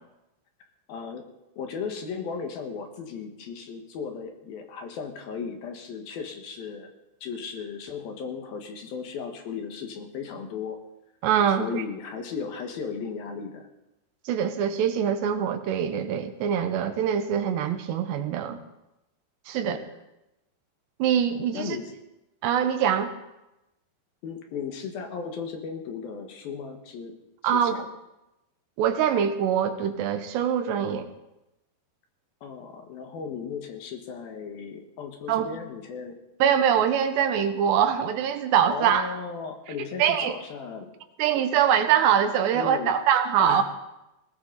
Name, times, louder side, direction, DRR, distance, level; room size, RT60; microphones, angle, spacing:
voice 1, 0.9-1.3 1.6-6.9 7.2-10.8 11.6-13.7 19.7-19.8 21.5-21.9 24.2-27.2 27.4-27.9 32.4-36.1 38.7-41.0 42.5-42.9 43.4-43.6, left 6 dB, 70° left, 4 dB, 3.1 m, -36 dB
voice 2, 11.2-11.8 14.3-18.6 19.5-19.8 21.0-21.8 22.4-23.1 27.4-27.8 28.8-31.1 35.3-35.5 36.4-39.1 40.0-40.4 41.2-43.6, right 9 dB, 90° right, 7 dB, 3.4 m, -23 dB
19.5 x 18.0 x 4.0 m, 0.91 s
omnidirectional pair, 4.8 m